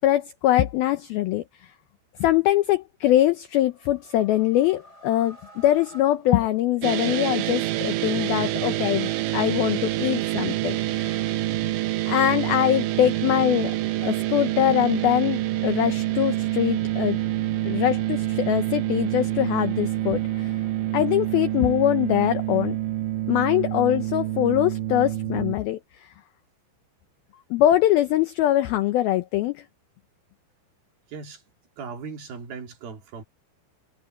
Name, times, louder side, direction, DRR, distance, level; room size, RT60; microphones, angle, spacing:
voice 1, 0.0-1.4 2.2-11.3 12.1-13.8 14.0-17.2 17.6-20.5 20.9-22.8 23.3-26.1 27.5-29.6, left 13 dB, 85° left, 2.1 m, -23 dB
sound 1, 3.4-7.1, equal, 15° left, 5.1 m, -50 dB
sound 2, 6.8-25.6, right 15 dB, 80° right, 3.4 m, -27 dB
sound 3, 12.9-21.6, left 9 dB, 55° left, 5.8 m, -52 dB
voice 2, 31.1-31.4 31.8-33.2, right 5 dB, 55° right, 4.4 m, -38 dB
omnidirectional pair, 5.4 m